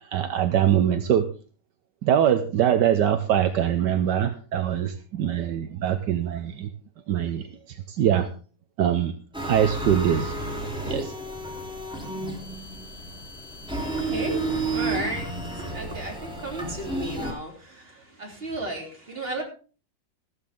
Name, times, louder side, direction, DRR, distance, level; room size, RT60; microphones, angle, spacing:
voice 1, 0.0-1.2 2.0-6.7 7.1-8.3 8.8-9.1 9.4-10.3 10.9-11.1, right 9 dB, 75° right, 9 dB, 1.4 m, -23 dB
sound 1, 9.3-17.3, right 2 dB, 5° right, 3.4 m, -31 dB
voice 2, 14.0-19.4, right 1 dB, 30° right, 1 dB, 3.6 m, -34 dB
14.5 x 13.0 x 3.6 m, 0.38 s
omnidirectional pair, 1.9 m